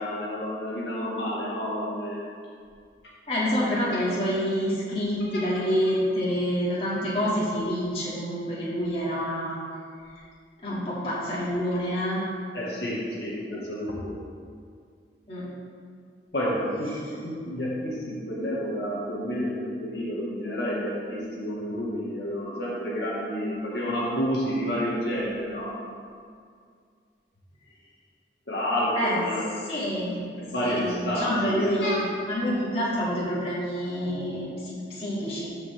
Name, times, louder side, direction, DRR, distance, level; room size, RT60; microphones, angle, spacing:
voice 1, 0.0-2.3 12.5-14.2 16.3-25.7 28.5-29.5 30.4-32.0, equal, 75° left, -6 dB, 1.9 m, -30 dB
voice 2, 3.3-9.5 10.6-12.2 15.3-15.5 28.9-30.2 30.6-35.5, equal, 35° left, -9 dB, 2.6 m, -27 dB
14.5 x 5.5 x 3.6 m, 2.2 s
head